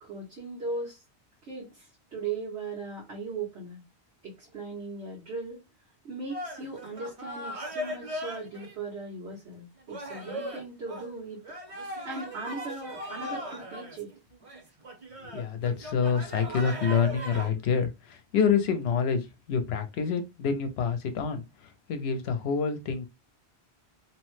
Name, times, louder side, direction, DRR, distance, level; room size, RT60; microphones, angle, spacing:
voice 1, 0.0-1.0 1.4-3.8 4.2-5.7 6.0-11.4 11.9-14.1, right 3 dB, 85° right, 1.3 m, -38 dB
sound 1, 6.3-8.7 9.3-9.4 9.9-17.5, equal, 35° right, 0.7 m, -38 dB
voice 2, 15.2-19.2 19.5-21.4 21.9-23.1, left 6 dB, 75° left, 0.8 m, -27 dB
2.9 x 2.1 x 3.0 m
omnidirectional pair, 1.1 m